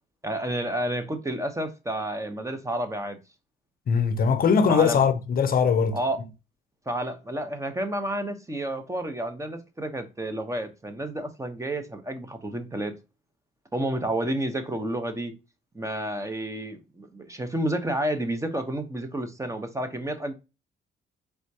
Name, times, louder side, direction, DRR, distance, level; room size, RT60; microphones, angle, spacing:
voice 1, 0.2-3.2 4.7-5.0 5.9-6.2 6.9-12.9 13.7-15.3 15.7-20.3, right 1 dB, 15° right, 0.8 m, -30 dB
voice 2, 3.9-6.0, left 6 dB, 50° left, 0.6 m, -21 dB
4.3 x 3.5 x 2.7 m
cardioid pair, 90°, 20 cm